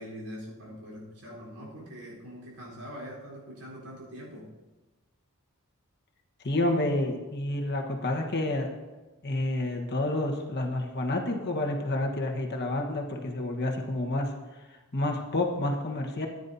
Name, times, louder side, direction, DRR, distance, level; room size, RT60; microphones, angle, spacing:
voice 1, 0.0-4.5, equal, 90° right, -4 dB, 4.1 m, -43 dB
voice 2, 6.4-8.7 9.2-14.3 14.9-16.3, left 1 dB, 50° left, 2 dB, 1.3 m, -29 dB
14.5 x 9.8 x 2.8 m, 1.2 s
head